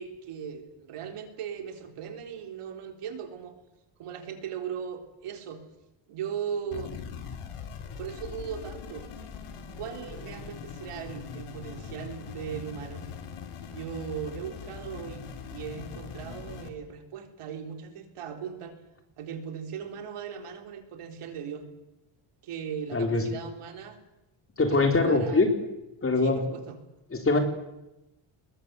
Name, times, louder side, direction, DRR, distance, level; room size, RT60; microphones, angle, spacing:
voice 1, 0.0-3.6 4.0-5.6 6.1-6.9 8.0-9.1 9.8-13.0 13.7-18.8 19.2-21.7 22.4-24.0 24.7-25.5 26.2-26.8, right 7 dB, 85° right, 6 dB, 3.9 m, -38 dB
sound 1, 6.7-16.7, left 6 dB, 80° left, 3.4 m, -41 dB
voice 2, 22.9-23.2 24.6-25.5 26.0-26.4 27.1-27.4, left 3 dB, 25° left, 5 dB, 3.9 m, -23 dB
25.0 x 21.0 x 8.2 m, 0.95 s
cardioid pair, 140°, 50 cm